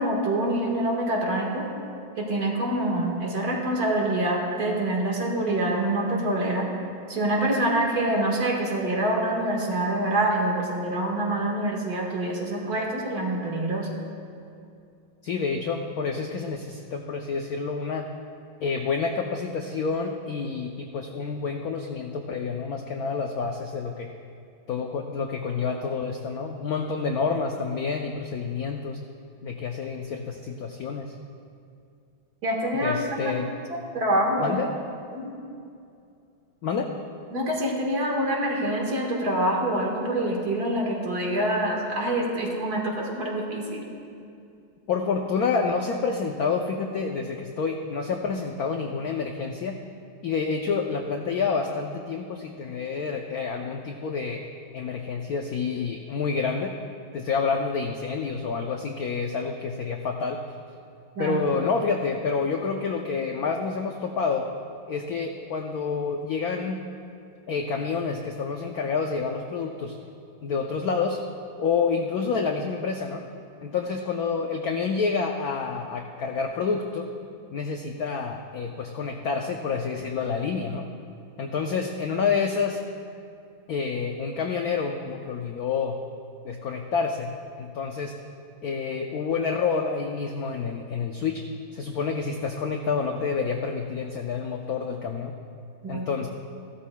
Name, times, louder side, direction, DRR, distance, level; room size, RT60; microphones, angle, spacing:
voice 1, 0.0-1.7 2.2-6.7 7.1-13.9 32.4-33.0 33.3-33.4 33.9-34.6 35.1-35.3 37.3-43.8 61.2-61.4 95.8-96.1, right 1 dB, 50° right, -1 dB, 2.0 m, -26 dB
voice 2, 15.2-18.1 18.6-24.1 24.7-29.0 29.4-31.1 32.8-33.5 34.4-34.7 36.6-36.9 44.9-49.8 50.2-54.4 54.7-56.7 57.1-60.4 61.2-64.5 64.9-66.8 67.5-70.0 70.4-71.2 71.6-73.2 73.6-77.1 77.5-80.9 81.4-82.8 83.7-86.0 86.4-87.3 87.6-88.1 88.6-91.4 91.7-95.3 95.9-96.3, left 5 dB, 70° left, 3 dB, 0.8 m, -28 dB
15.5 x 12.5 x 2.2 m, 2.5 s
omnidirectional pair, 2.2 m